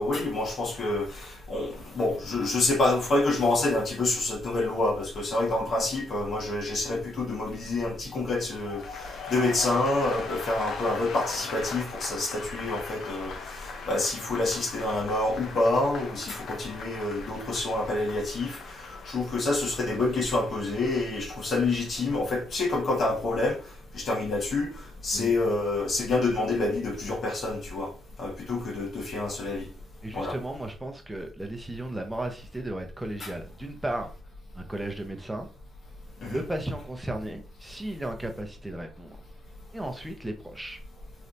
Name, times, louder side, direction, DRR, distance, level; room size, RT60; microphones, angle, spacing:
voice 1, 0.0-23.6 23.9-27.9 28.2-29.7 30.1-30.4 33.2-33.3 36.2-36.4, left 2 dB, 55° left, 1.3 m, -27 dB
sound 1, 8.4-24.4 24.7-25.2, left 5 dB, 75° left, 0.6 m, -41 dB
voice 2, 30.0-34.1 34.5-35.5 36.3-39.2 39.7-40.8, right 1 dB, 10° right, 0.7 m, -35 dB
3.3 x 2.6 x 2.6 m
cardioid pair, 90°, 0 cm